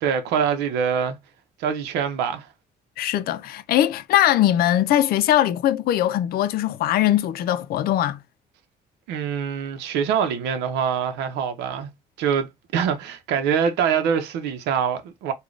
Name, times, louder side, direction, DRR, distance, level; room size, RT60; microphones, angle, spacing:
voice 1, 0.0-1.2 1.6-2.5 9.1-11.9 12.2-15.3, right 7 dB, 90° right, 0.7 m, -24 dB
voice 2, 3.0-8.2, left 12 dB, 65° left, 0.5 m, -21 dB
3.8 x 2.3 x 3.1 m
cardioid pair, 110°, 17 cm